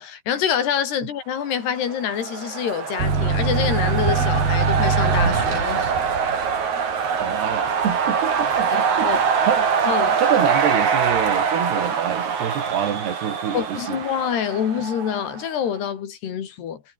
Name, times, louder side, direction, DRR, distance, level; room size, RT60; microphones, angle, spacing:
voice 1, 0.0-5.9 9.0-9.2 9.9-10.2 13.5-16.8, left 8 dB, 85° left, 5.0 m, -26 dB
sound 1, 1.7-15.5, right 6 dB, 50° right, 4.4 m, -24 dB
sound 2, 3.0-10.3 10.7-11.4, right 4 dB, 70° right, 9.1 m, -24 dB
voice 2, 7.2-9.1 9.5-9.6 10.2-14.0, right 9 dB, 85° right, 4.7 m, -26 dB
omnidirectional pair, 4.6 m